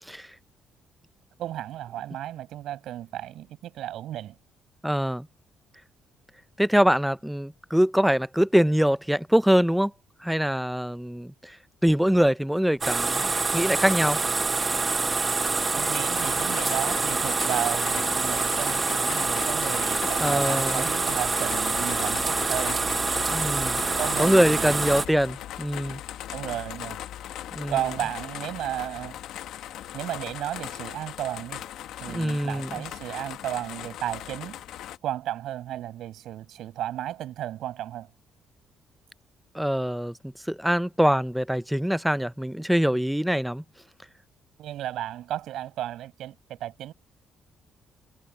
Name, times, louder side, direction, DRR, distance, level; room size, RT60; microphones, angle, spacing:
voice 1, 1.4-4.4 15.7-22.9 24.0-24.8 26.3-27.0 27.7-29.2 29.9-31.6 32.0-34.6 35.0-38.1 44.6-46.9, right 12 dB, 75° right, 6.6 m, -34 dB
voice 2, 4.8-5.3 6.6-9.9 10.2-11.6 11.8-13.3 13.5-14.2 20.2-20.9 23.3-23.8 24.2-26.0 27.5-27.7 32.1-32.7 39.5-40.1 40.5-43.6, equal, ahead, 0.4 m, -23 dB
sound 1, 12.8-25.1, right 4 dB, 25° right, 1.0 m, -26 dB
sound 2, 16.1-35.0, left 12 dB, 80° left, 1.2 m, -38 dB
cardioid pair, 125°, 0 cm